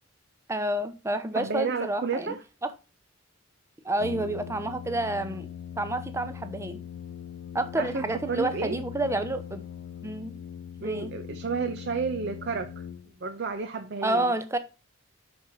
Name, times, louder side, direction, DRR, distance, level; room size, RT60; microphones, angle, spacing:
voice 1, 0.5-2.3 2.6-2.7 3.8-5.5 5.8-6.8 7.5-9.6 10.0-10.4 10.8-11.1 14.0-14.6, right 1 dB, 15° right, 0.6 m, -29 dB
voice 2, 1.3-2.4 7.8-8.8 10.8-12.9 13.2-14.3, right 5 dB, 50° right, 0.6 m, -31 dB
Brass instrument, 4.0-13.5, left 8 dB, 80° left, 0.4 m, -41 dB
6.0 x 4.4 x 6.2 m
head